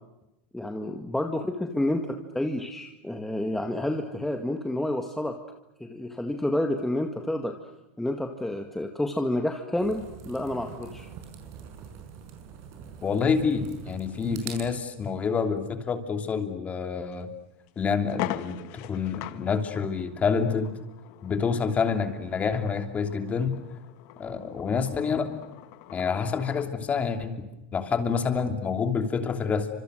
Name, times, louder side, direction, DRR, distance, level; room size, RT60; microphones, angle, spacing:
voice 1, 0.5-5.4 5.8-7.6 8.0-11.1, left 1 dB, 5° left, 4 dB, 1.8 m, -29 dB
sound 1, 9.8-14.8, right 8 dB, 45° right, 5.8 m, -44 dB
voice 2, 13.0-17.3 17.8-18.6 18.9-20.8 21.2-23.6 24.2-25.4 25.9-27.3 27.7-29.7, left 5 dB, 20° left, 7 dB, 3.0 m, -27 dB
sound 2, 17.1-17.2 17.7-17.8 18.1-26.7, left 16 dB, 50° left, 1.5 m, -41 dB
30.0 x 26.0 x 6.5 m, 0.94 s
supercardioid pair, 135°, 7 cm